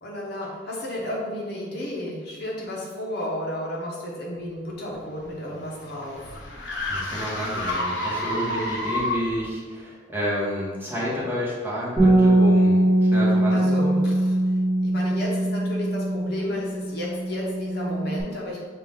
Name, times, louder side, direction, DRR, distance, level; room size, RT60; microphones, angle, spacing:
voice 1, 0.0-6.4 13.5-14.4 14.8-18.7, left 1 dB, 60° left, -3 dB, 1.0 m, -32 dB
sound 1, 4.9-9.4, left 1 dB, 80° left, 0.9 m, -30 dB
voice 2, 6.9-14.0, equal, 10° right, -7 dB, 1.1 m, -30 dB
Bass guitar, 12.0-18.2, right 1 dB, 10° left, 1.3 m, -21 dB
5.8 x 2.4 x 3.5 m, 1.5 s
head